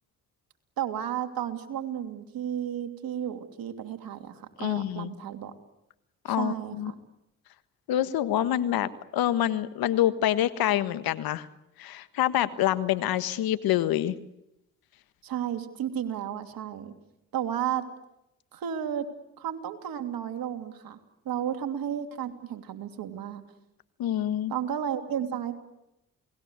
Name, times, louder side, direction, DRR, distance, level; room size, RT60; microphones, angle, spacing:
voice 1, 0.8-5.5 6.3-7.0 15.2-16.9 17.3-17.8 18.5-19.1 19.4-21.0 21.2-23.4 24.5-25.6, right 9 dB, 75° right, 7 dB, 3.0 m, -33 dB
voice 2, 4.6-5.1 6.2-6.9 7.9-11.5 11.8-14.1 24.0-24.5, left 12 dB, 80° left, 13 dB, 1.5 m, -26 dB
29.0 x 20.0 x 8.2 m, 0.86 s
supercardioid pair, 50°, 35 cm